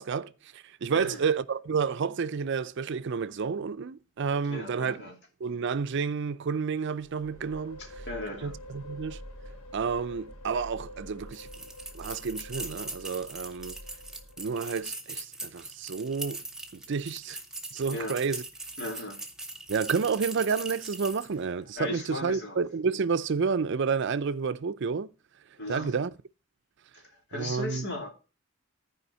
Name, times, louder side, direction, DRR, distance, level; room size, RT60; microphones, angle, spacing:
voice 1, 0.0-5.0 5.4-7.8 8.4-9.2 9.7-11.5 11.9-13.8 14.4-16.4 16.7-17.4 17.7-18.4 19.7-25.1 25.7-26.1 27.3-27.8, right 5 dB, 60° right, 0.5 m, -30 dB
voice 2, 0.9-1.2 4.5-5.1 7.8-8.6 17.9-18.2 18.8-19.2 21.8-22.6 25.6-25.9 26.9-28.1, left 2 dB, 55° left, 2.6 m, -37 dB
sound 1, 7.0-14.8, equal, 90° left, 1.6 m, -46 dB
sound 2, 11.3-21.4, right 2 dB, 5° right, 1.1 m, -41 dB
14.0 x 4.9 x 5.5 m
head